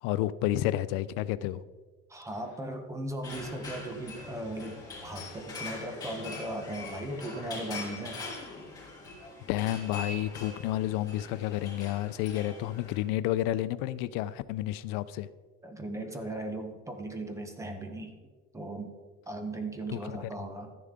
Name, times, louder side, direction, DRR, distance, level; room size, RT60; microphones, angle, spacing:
voice 1, 0.0-1.6 9.5-15.3 19.9-20.2, left 14 dB, 90° left, 15 dB, 0.5 m, -30 dB
voice 2, 2.1-8.3 15.6-18.1 18.5-18.9 19.3-20.7, right 1 dB, 10° right, 5 dB, 0.9 m, -37 dB
sound 1, 3.2-13.0, left 3 dB, 10° left, 3.3 m, -43 dB
13.0 x 10.0 x 3.7 m, 1.4 s
cardioid pair, 175°, 31 cm